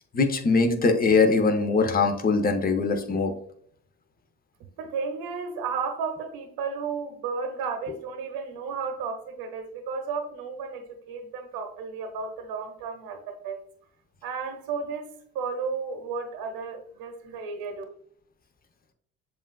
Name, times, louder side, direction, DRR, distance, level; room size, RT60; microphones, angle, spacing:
voice 1, 0.1-3.3, left 4 dB, 20° left, 6 dB, 0.8 m, -22 dB
voice 2, 4.8-13.6 14.2-15.1 15.3-17.8, right 5 dB, 60° right, 6 dB, 0.9 m, -33 dB
7.1 x 2.6 x 2.3 m, 0.64 s
hypercardioid pair, 60°, 40 cm